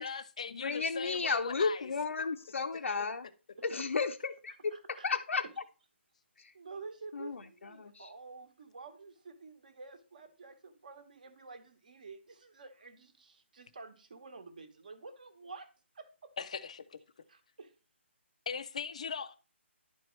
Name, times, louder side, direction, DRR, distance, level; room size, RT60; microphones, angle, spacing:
voice 1, 0.0-1.9 16.4-17.0 18.5-19.4, left 6 dB, 30° left, 0.4 m, -39 dB
voice 2, 0.6-3.3 3.6-5.4 6.4-6.5 7.1-7.4 7.8-8.1, left 4 dB, 85° left, 0.6 m, -33 dB
voice 3, 4.7-5.1 5.4-5.5 6.5-15.7 15.9-16.3 17.3-17.7, right 4 dB, 40° right, 1.0 m, -50 dB
11.0 x 4.4 x 3.1 m
hypercardioid pair, 180°, 7 cm